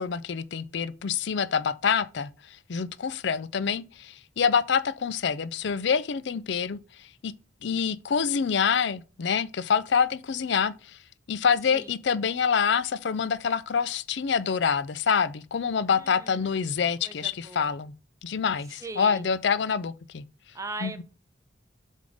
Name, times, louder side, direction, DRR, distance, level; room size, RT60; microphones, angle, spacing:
voice 1, 0.0-7.3 7.6-11.0 11.3-17.9 18.2-20.2 20.8-21.0, left 6 dB, 70° left, 0.4 m, -26 dB
voice 2, 15.9-16.6 17.0-17.7 18.7-19.2 20.5-21.0, right 3 dB, 15° right, 0.7 m, -40 dB
7.7 x 3.7 x 4.9 m
head